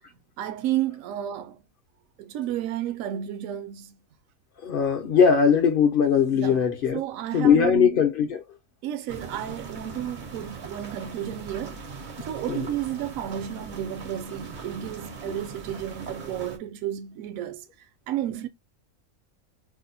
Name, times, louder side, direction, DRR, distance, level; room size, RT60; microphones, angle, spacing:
voice 1, 0.4-1.6 2.2-4.0 6.3-6.7 6.9-8.0 8.8-12.0 12.3-17.6 18.1-18.5, right 11 dB, 75° right, 0.9 m, -32 dB
voice 2, 4.6-7.0 7.3-8.4 12.5-12.7 15.3-15.4, left 7 dB, 60° left, 0.6 m, -20 dB
sound 1, 9.1-16.6, right 4 dB, 50° right, 0.6 m, -40 dB
2.7 x 2.1 x 4.0 m
omnidirectional pair, 1.5 m